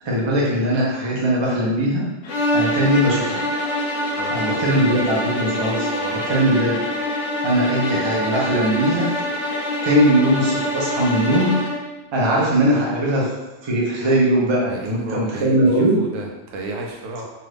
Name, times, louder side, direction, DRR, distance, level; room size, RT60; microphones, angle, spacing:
voice 1, 0.0-2.0 2.5-3.4 4.3-6.8 7.4-9.1 9.8-11.5 12.1-13.3 13.6-16.0, right 1 dB, 30° right, -5 dB, 0.5 m, -20 dB
sound 1, 2.2-11.9, left 1 dB, 70° left, 0.9 m, -25 dB
voice 2, 4.1-5.0 6.0-6.2 14.7-17.3, right 2 dB, 80° right, 0 dB, 0.9 m, -33 dB
2.7 x 2.4 x 3.3 m, 1.1 s
omnidirectional pair, 1.3 m